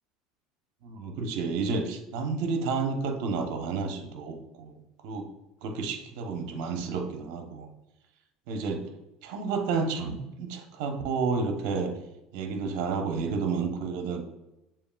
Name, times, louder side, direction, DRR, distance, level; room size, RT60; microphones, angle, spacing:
voice 1, 0.8-4.8 5.0-5.3 5.6-7.7 8.5-8.8 9.2-11.9 12.3-14.2, right 4 dB, 70° right, 4 dB, 0.8 m, -30 dB
6.9 x 2.9 x 2.3 m, 0.93 s
supercardioid pair, 105°, 0 cm